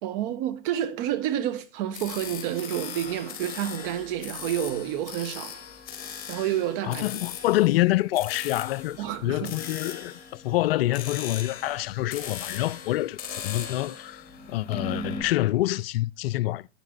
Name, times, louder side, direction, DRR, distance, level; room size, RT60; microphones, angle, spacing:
voice 1, 0.0-5.6 6.3-7.1 9.0-9.6, right 11 dB, 50° right, 1.8 m, -29 dB
sound 1, 1.9-15.2, left 6 dB, 25° left, 3.3 m, -39 dB
voice 2, 6.8-16.7, left 17 dB, 60° left, 0.5 m, -26 dB
12.0 x 9.2 x 3.9 m
hypercardioid pair, 110°, 35 cm